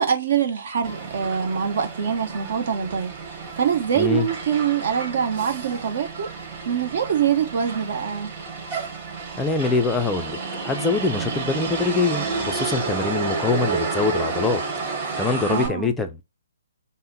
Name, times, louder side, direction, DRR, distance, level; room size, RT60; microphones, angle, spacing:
voice 1, 0.0-6.3 6.6-8.3 15.5-15.9, right 7 dB, 55° right, 1.1 m, -24 dB
Motor vehicle (road), 0.8-15.7, right 4 dB, 35° right, 3.0 m, -30 dB
voice 2, 4.0-4.3 9.4-14.6 14.9-16.2, left 4 dB, 10° left, 0.5 m, -24 dB
5.4 x 2.1 x 4.0 m
figure-of-eight pair, 130°, 0 cm